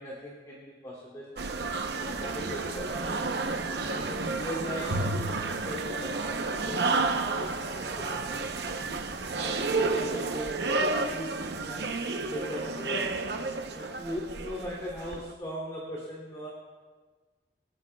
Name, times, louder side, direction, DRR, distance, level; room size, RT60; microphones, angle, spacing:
voice 1, 0.0-1.3 1.8-3.3 3.8-8.8 9.4-13.2 13.7-16.5, equal, 20° left, -6 dB, 2.6 m, -40 dB
sound 1, 1.4-15.2, right 3 dB, 70° right, 0.7 m, -31 dB
27.0 x 9.5 x 2.3 m, 1.4 s
head